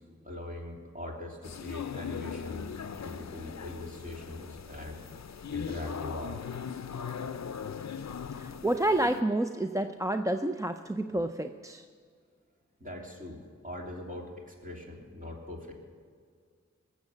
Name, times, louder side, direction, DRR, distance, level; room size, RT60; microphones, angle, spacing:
voice 1, 0.0-5.0 5.5-6.4 12.8-15.7, left 1 dB, 25° right, -1 dB, 2.9 m, -41 dB
sound 1, 1.4-9.2, left 7 dB, 65° left, 0.5 m, -39 dB
voice 2, 8.3-11.8, right 1 dB, 10° right, 7 dB, 0.5 m, -29 dB
20.0 x 7.2 x 7.3 m, 2.1 s
wide cardioid pair, 65°, 30 cm